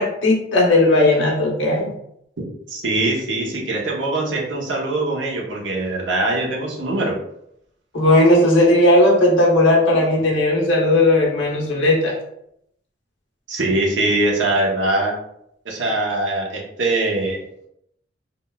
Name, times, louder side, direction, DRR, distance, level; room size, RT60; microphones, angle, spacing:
voice 1, 0.0-1.9 7.9-12.1, left 1 dB, 85° left, -2 dB, 0.9 m, -16 dB
voice 2, 2.7-7.1 13.5-15.1 15.6-17.4, right 2 dB, 75° right, -2 dB, 0.8 m, -22 dB
3.6 x 2.3 x 2.3 m, 0.75 s
head